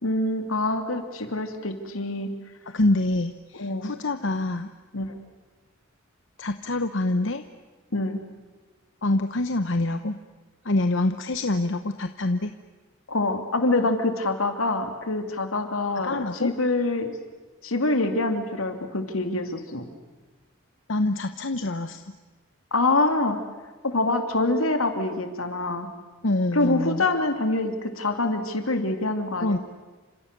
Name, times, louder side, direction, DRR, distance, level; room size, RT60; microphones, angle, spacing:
voice 1, 0.0-2.3 3.6-3.9 4.9-5.2 7.9-8.2 13.1-17.2 17.6-19.9 22.7-23.4 23.8-25.9 26.5-29.6, left 2 dB, 80° left, 6 dB, 2.8 m, -25 dB
voice 2, 2.7-4.7 6.4-7.4 9.0-10.2 10.6-12.5 16.0-16.5 20.9-22.0 26.2-27.0 29.4-29.6, left 2 dB, 60° left, 9 dB, 0.9 m, -25 dB
30.0 x 26.5 x 6.8 m, 1.3 s
head